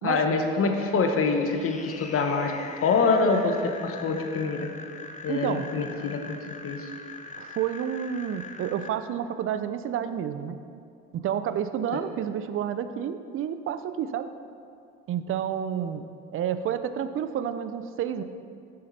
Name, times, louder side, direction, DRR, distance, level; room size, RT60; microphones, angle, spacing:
voice 1, 0.0-2.5 2.8-3.5 3.8-4.7 5.2-6.4 6.6-6.9 11.9-12.0, left 4 dB, 50° left, 4 dB, 1.0 m, -25 dB
sound 1, 1.2-8.9, left 4 dB, 25° left, 0.6 m, -42 dB
voice 2, 5.3-5.7 7.4-10.6 11.1-14.3 15.1-18.2, right 9 dB, 45° right, 11 dB, 0.5 m, -30 dB
7.5 x 5.7 x 4.1 m, 2.4 s
supercardioid pair, 80°, 30 cm